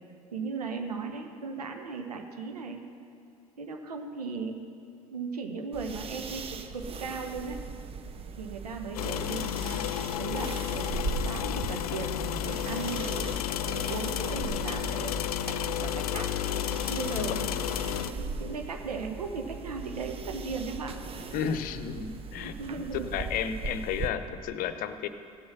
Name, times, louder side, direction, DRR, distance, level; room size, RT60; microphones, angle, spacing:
voice 1, 0.3-2.8 3.6-4.6 5.1-7.6 8.4-9.9 10.1-10.9 11.2-15.1 15.4-16.3 16.9-17.6 18.0-21.0 22.4-23.2, right 4 dB, 85° right, 4 dB, 0.9 m, -37 dB
sound 1, 5.7-24.1, right 4 dB, 30° right, 0.8 m, -39 dB
sound 2, 8.9-18.1, left 11 dB, 75° left, 0.5 m, -32 dB
voice 2, 21.3-22.5 22.9-25.1, left 8 dB, 45° left, 11 dB, 0.8 m, -32 dB
16.5 x 6.3 x 6.0 m, 2.4 s
figure-of-eight pair, 70°, 19 cm